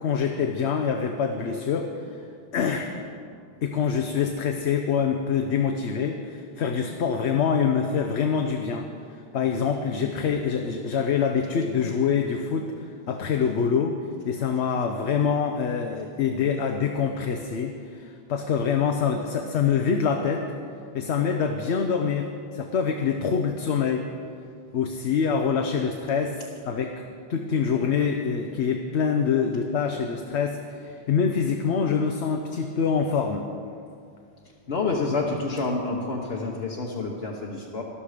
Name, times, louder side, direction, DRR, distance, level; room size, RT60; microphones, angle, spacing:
voice 1, 0.0-2.1 2.5-2.9 3.6-8.9 9.3-13.9 14.2-20.5 20.9-22.3 22.5-24.1 24.7-33.5, left 6 dB, 85° left, 4 dB, 1.0 m, -25 dB
voice 2, 34.7-37.8, left 3 dB, 70° left, -2 dB, 1.3 m, -28 dB
13.0 x 12.0 x 5.0 m, 2.4 s
omnidirectional pair, 1.1 m